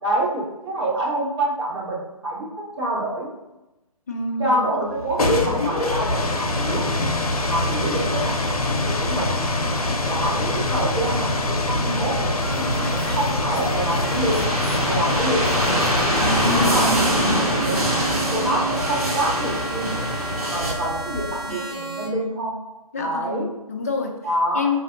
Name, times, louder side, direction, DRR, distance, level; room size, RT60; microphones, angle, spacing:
voice 1, 0.0-2.5 2.8-3.3 4.4-6.9 7.5-9.3 10.1-14.4 14.8-15.9 16.5-16.9 17.6-19.9 20.4-22.5 23.0-23.5 24.2-24.8, right 1 dB, 45° right, -5 dB, 1.3 m, -27 dB
voice 2, 4.1-4.9 16.5-17.6 22.9-24.1 24.5-24.8, left 4 dB, 25° left, 2 dB, 0.4 m, -28 dB
sound 1, 4.9-21.6, left 2 dB, 70° left, 0.6 m, -25 dB
sound 2, 12.4-22.1, right 4 dB, 10° right, 0.7 m, -34 dB
sound 3, 12.9-20.7, equal, 75° right, 1.3 m, -24 dB
4.8 x 2.6 x 2.4 m, 0.99 s
figure-of-eight pair, 140°, 19 cm